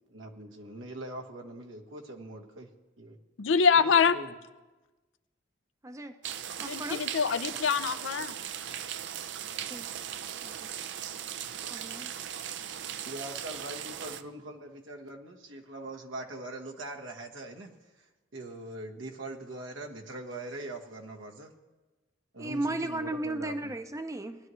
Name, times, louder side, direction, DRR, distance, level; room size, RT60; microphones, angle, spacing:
voice 1, 0.1-2.7 3.0-3.2 3.8-4.3 9.2-9.3 13.1-17.7 18.0-18.1 18.3-21.5 22.3-23.7, right 2 dB, 85° right, 2 dB, 1.3 m, -42 dB
voice 2, 3.4-4.2 6.6-8.4, left 6 dB, 80° left, 12 dB, 0.5 m, -25 dB
sound 1, 6.2-14.2, right 9 dB, 65° right, 0.5 m, -38 dB
voice 3, 6.6-7.0 9.7-9.8 10.4-10.7 11.7-12.1 22.4-24.4, right 2 dB, 15° right, 8 dB, 0.6 m, -35 dB
19.5 x 11.0 x 3.1 m, 1.2 s
head